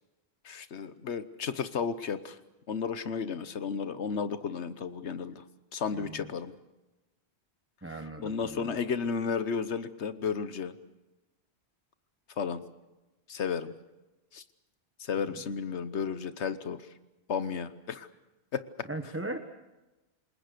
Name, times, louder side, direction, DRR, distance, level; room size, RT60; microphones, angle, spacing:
voice 1, 0.4-2.4 2.7-5.4 5.7-6.5 7.8-10.7 12.4-12.6 13.3-13.7 14.3-14.4 15.0-16.9 17.3-18.1 18.5-18.6, left 6 dB, 85° left, 12 dB, 1.3 m, -33 dB
voice 2, 5.9-6.3 7.8-8.8 15.3-15.4 18.9-19.4, right 2 dB, 10° right, 6 dB, 1.2 m, -38 dB
28.0 x 21.0 x 6.8 m, 1.1 s
omnidirectional pair, 1.1 m